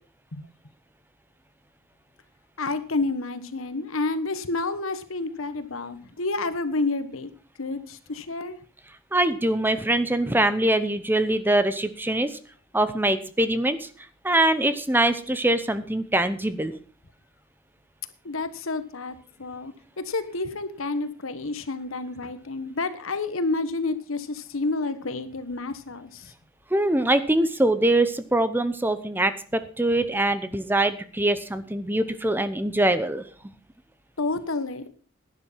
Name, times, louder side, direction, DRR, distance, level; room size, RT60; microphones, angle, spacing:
voice 1, 2.6-7.3 7.6-8.6 18.2-19.7 20.0-26.3 34.2-34.9, left 3 dB, 85° left, 12 dB, 1.3 m, -29 dB
voice 2, 9.1-12.4 12.7-13.9 14.2-16.7 26.7-33.2, right 1 dB, 10° right, 12 dB, 0.8 m, -23 dB
11.5 x 10.0 x 5.6 m, 0.41 s
head